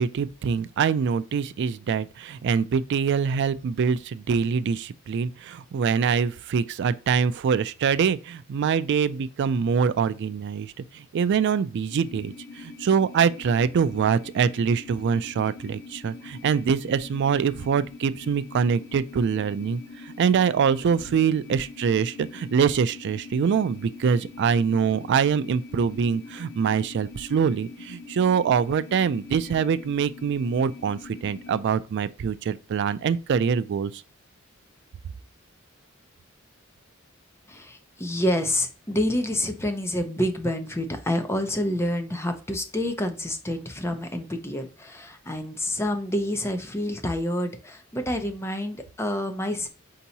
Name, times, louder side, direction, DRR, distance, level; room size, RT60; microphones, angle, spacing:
voice 1, 0.0-34.0, right 6 dB, 55° right, 0.3 m, -24 dB
sound 1, 11.9-31.6, left 4 dB, 55° left, 0.7 m, -44 dB
voice 2, 37.5-49.7, left 1 dB, 10° left, 0.6 m, -28 dB
4.5 x 2.9 x 4.0 m
head